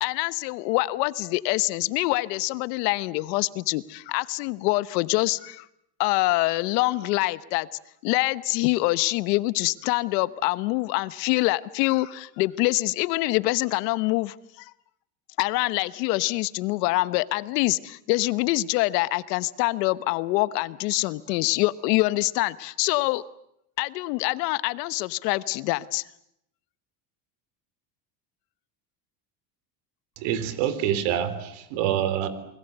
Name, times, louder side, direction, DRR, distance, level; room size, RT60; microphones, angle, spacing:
voice 1, 0.0-5.6 6.0-7.7 8.0-14.7 15.4-23.2 23.8-26.0, left 20 dB, 90° left, 16 dB, 1.2 m, -25 dB
voice 2, 30.2-32.3, right 10 dB, 70° right, 13 dB, 3.7 m, -26 dB
29.0 x 21.0 x 8.1 m, 0.76 s
cardioid pair, 125°, 47 cm